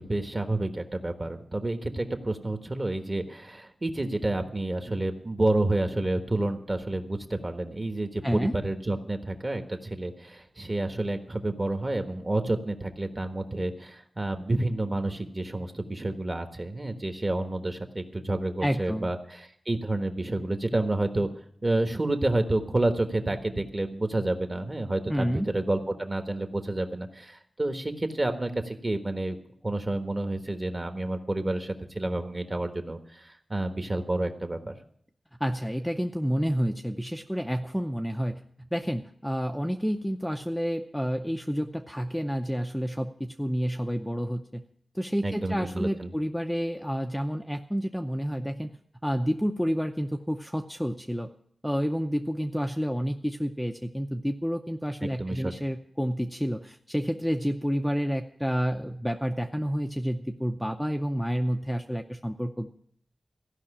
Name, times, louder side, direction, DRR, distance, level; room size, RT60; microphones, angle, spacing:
voice 1, 0.0-21.3 21.6-29.4 29.6-34.7 45.2-46.1 55.0-55.5, right 2 dB, 30° right, 6 dB, 1.4 m, -29 dB
voice 2, 8.2-8.5 18.6-19.1 25.1-25.5 35.4-38.4 38.7-44.6 44.9-48.7 49.0-51.3 51.6-62.7, equal, ahead, 3 dB, 0.6 m, -29 dB
15.0 x 5.7 x 10.0 m, 0.65 s
wide cardioid pair, 110°, 0 cm